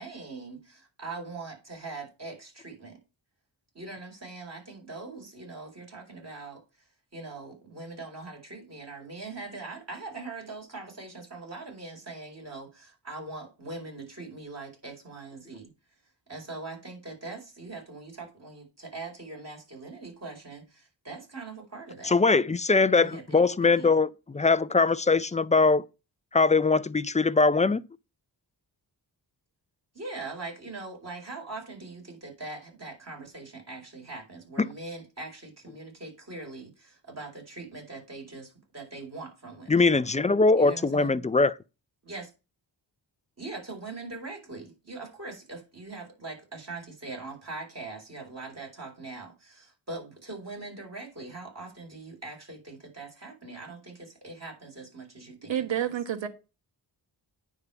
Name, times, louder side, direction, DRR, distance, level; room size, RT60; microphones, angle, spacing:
voice 1, 0.0-3.0 3.7-15.7 16.3-22.1 22.9-23.9 29.9-39.9 40.6-41.2 42.0-42.3 43.4-55.9, right 3 dB, 35° right, 4.6 m, -42 dB
voice 2, 22.0-24.1 24.3-25.8 26.3-27.8 39.7-41.5, left 3 dB, 15° left, 0.4 m, -22 dB
voice 3, 55.5-56.3, right 10 dB, 90° right, 1.4 m, -29 dB
9.5 x 3.6 x 6.8 m
wide cardioid pair, 80°, 44 cm